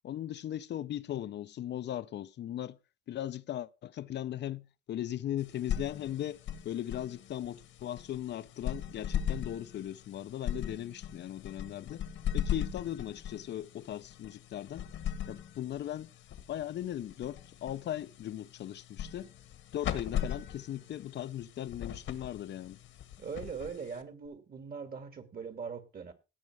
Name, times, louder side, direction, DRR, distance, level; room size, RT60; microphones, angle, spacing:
voice 1, 0.0-2.8 3.1-12.0 12.3-14.9 15.3-16.1 16.5-19.3 19.7-22.8, left 11 dB, 60° left, 0.6 m, -38 dB
sound 1, 5.4-24.3, left 9 dB, 80° left, 1.6 m, -39 dB
voice 2, 23.2-26.1, right 6 dB, 50° right, 2.3 m, -41 dB
17.5 x 6.3 x 4.8 m
cardioid pair, 90°, 20 cm